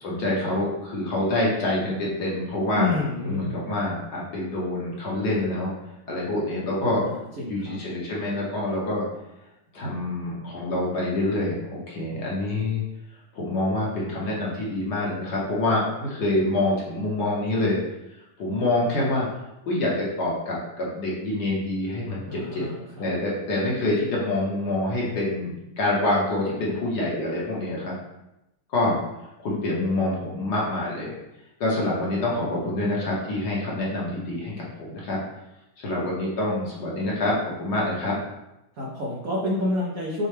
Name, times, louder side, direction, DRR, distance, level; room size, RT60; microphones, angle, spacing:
voice 1, 0.0-3.0 3.2-5.7 6.1-7.0 7.5-9.0 9.7-12.8 13.3-17.8 18.4-19.3 19.6-22.7 23.0-27.9 28.7-29.0 29.4-31.2 31.6-35.2 35.8-38.1, left 2 dB, 55° left, -5 dB, 1.4 m, -26 dB
voice 2, 2.7-3.6 7.1-7.8 22.3-23.1 38.7-40.3, left 1 dB, 70° right, -5 dB, 0.8 m, -29 dB
6.4 x 2.3 x 3.2 m, 0.92 s
omnidirectional pair, 2.4 m